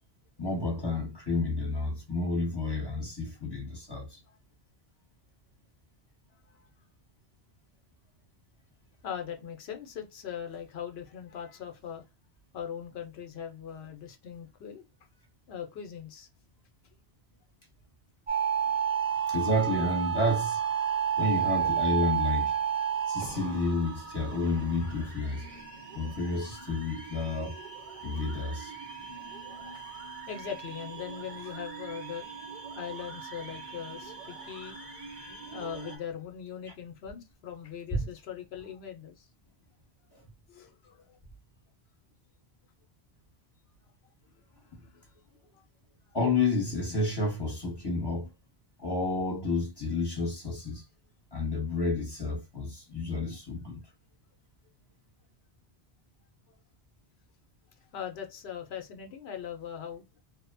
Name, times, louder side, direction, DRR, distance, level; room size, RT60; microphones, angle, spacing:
voice 1, 0.4-4.2 19.3-20.6 21.2-22.5 23.1-25.4 25.9-27.6 28.0-28.7 37.9-38.1 46.1-48.3 48.8-50.8 51.3-53.8, left 2 dB, 25° left, 0.9 m, -30 dB
voice 2, 9.0-12.0 12.5-14.8 15.5-16.3 29.2-30.0 30.3-34.8 35.1-39.3 40.5-41.2 44.8-45.1 45.5-45.6 56.5-56.6 57.9-60.0, left 8 dB, 75° left, 0.9 m, -41 dB
sound 1, 18.3-36.0, right 8 dB, 40° right, 0.6 m, -33 dB
2.8 x 2.1 x 2.4 m
omnidirectional pair, 1.1 m